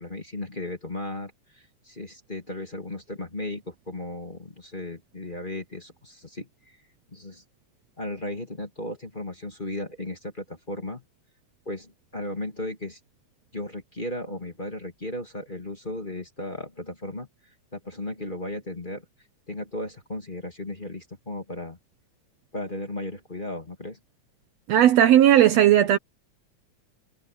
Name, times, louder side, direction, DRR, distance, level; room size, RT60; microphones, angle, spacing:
voice 1, 0.0-6.5 7.1-7.4 8.0-11.0 11.7-13.0 13.5-17.3 17.7-19.0 19.5-21.8 22.5-24.0, left 1 dB, 15° left, 2.4 m, -35 dB
voice 2, 24.7-26.0, right 11 dB, 70° right, 1.8 m, -16 dB
omnidirectional pair, 3.4 m